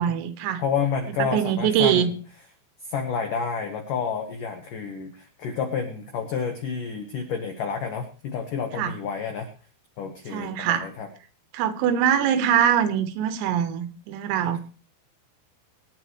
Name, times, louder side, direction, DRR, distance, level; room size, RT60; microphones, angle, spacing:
voice 1, 0.0-0.6 1.2-2.1 8.8-8.9 10.3-10.9 11.5-14.6, right 9 dB, 85° right, 10 dB, 3.8 m, -23 dB
voice 2, 0.6-2.1 2.9-9.5 10.0-11.1 14.4-14.6, left 6 dB, 90° left, 4 dB, 1.8 m, -29 dB
24.0 x 10.0 x 3.2 m, 0.38 s
omnidirectional pair, 6.0 m